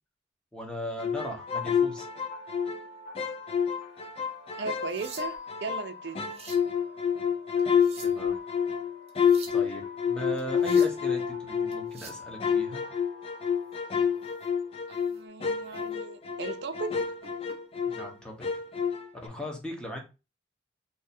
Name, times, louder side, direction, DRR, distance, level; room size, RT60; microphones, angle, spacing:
voice 1, 0.5-2.1 8.0-8.4 9.5-12.8 17.9-18.5 19.2-20.0, equal, 5° left, 0.8 m, -38 dB
sound 1, 1.0-2.9 3.2-5.9 6.2-12.0 12.4-18.1 18.4-19.3, left 7 dB, 30° left, 0.4 m, -28 dB
sound 2, 1.4-15.2, left 1 dB, 50° left, 0.9 m, -49 dB
voice 2, 4.6-5.3 5.6-6.3 14.9-16.9, right 4 dB, 70° right, 0.5 m, -36 dB
sound 3, 4.7-5.6 6.1-6.7 7.6-8.3 9.1-9.6 10.4-11.0 11.7-12.3 14.3-14.5 15.0-15.2 15.7-15.8 17.0-17.6 18.7-18.9, right 5 dB, 35° right, 0.7 m, -47 dB
2.7 x 2.4 x 4.1 m
head